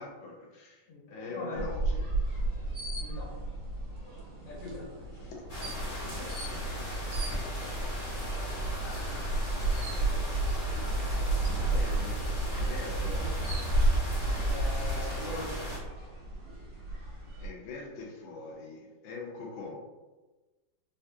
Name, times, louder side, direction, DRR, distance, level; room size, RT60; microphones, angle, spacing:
voice 1, 0.0-2.1 4.4-4.6 5.2-5.4 5.9-7.4 8.8-12.2 12.5-13.2 17.4-19.8, left 3 dB, 65° left, -2 dB, 0.6 m, -45 dB
voice 2, 1.3-1.8 3.0-3.3 4.5-4.9 14.5-15.6, left 2 dB, 85° left, -6 dB, 1.8 m, -41 dB
sound 1, 1.5-17.5, right 2 dB, 75° right, 1.7 m, -32 dB
sound 2, 5.5-15.8, equal, 30° left, 0.7 m, -36 dB
3.9 x 2.5 x 2.3 m, 1.2 s
omnidirectional pair, 2.0 m